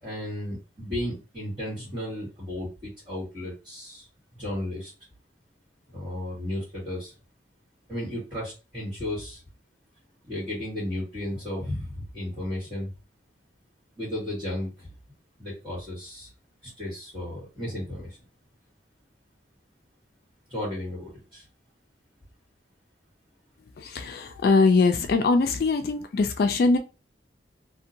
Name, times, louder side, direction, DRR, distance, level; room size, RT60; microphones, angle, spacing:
voice 1, 0.0-4.1 4.4-4.9 5.9-7.1 7.9-9.4 10.2-12.9 14.0-14.9 15.4-16.3 16.6-18.2 20.5-21.4, left 1 dB, 30° right, -10 dB, 1.2 m, -34 dB
voice 2, 23.8-26.8, left 3 dB, 55° left, 7 dB, 0.3 m, -22 dB
2.6 x 2.2 x 2.6 m, 0.31 s
head